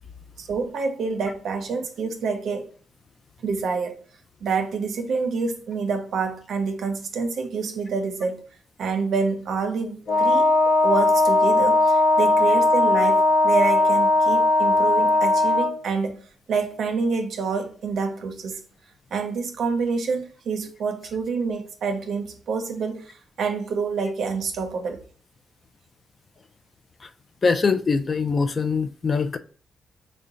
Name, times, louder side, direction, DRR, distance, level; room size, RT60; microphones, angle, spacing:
voice 1, 0.4-2.7 3.4-4.0 4.4-8.4 8.8-10.5 10.8-16.2 16.5-18.6 19.1-25.0, right 4 dB, 70° right, 0.6 m, -27 dB
Wind instrument woodwind instrument, 10.1-15.8, left 2 dB, 60° left, 0.9 m, -18 dB
voice 2, 27.4-29.4, left 4 dB, 40° left, 0.3 m, -22 dB
3.7 x 2.1 x 3.7 m
cardioid pair, 90°, 0 cm